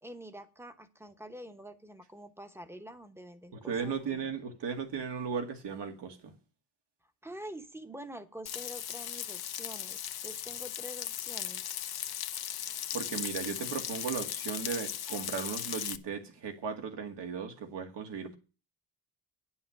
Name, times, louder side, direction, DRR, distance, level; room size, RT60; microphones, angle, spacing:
voice 1, 0.0-4.2 7.2-11.7, equal, 5° right, 1.0 m, -46 dB
voice 2, 3.5-6.3 12.9-18.4, right 6 dB, 75° right, 2.1 m, -36 dB
Frying (food), 8.5-16.0, left 11 dB, 60° left, 0.8 m, -37 dB
10.0 x 5.6 x 8.4 m
wide cardioid pair, 145°, 42 cm